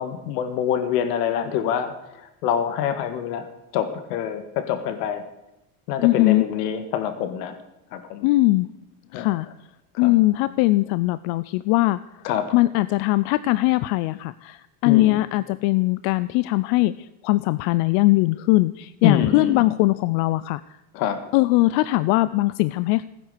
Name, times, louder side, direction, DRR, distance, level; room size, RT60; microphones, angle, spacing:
voice 1, 0.0-5.3 5.9-7.6 7.9-8.3 9.1-9.3 9.9-10.1 12.2-12.6 14.8-15.2 19.0-19.7 20.9-21.2, left 9 dB, 90° left, 9 dB, 1.8 m, -26 dB
voice 2, 6.0-6.4 8.2-8.7 9.1-9.5 10.0-12.2 12.5-20.6 21.3-23.0, left 19 dB, 60° left, 16 dB, 0.5 m, -20 dB
16.0 x 9.8 x 6.7 m, 0.90 s
cardioid pair, 145°, 46 cm